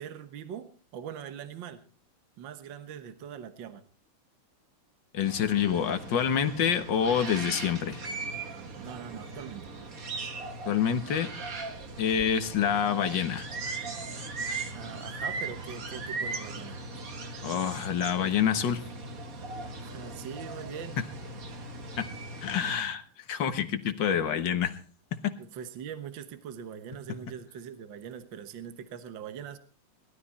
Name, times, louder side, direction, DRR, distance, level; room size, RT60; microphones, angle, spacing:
voice 1, 0.0-1.8 2.4-3.8 8.8-9.7 14.7-16.8 19.8-21.0 25.4-29.6, right 8 dB, 65° right, 10 dB, 1.8 m, -42 dB
voice 2, 5.1-8.0 10.7-11.3 12.0-13.5 17.4-18.8 22.0-22.1 22.4-23.0 23.3-24.7 25.2-25.3, left 8 dB, 60° left, 9 dB, 1.9 m, -27 dB
sound 1, 5.2-22.8, right 3 dB, 45° right, 1.8 m, -39 dB
19.5 x 12.5 x 4.2 m, 0.39 s
omnidirectional pair, 2.4 m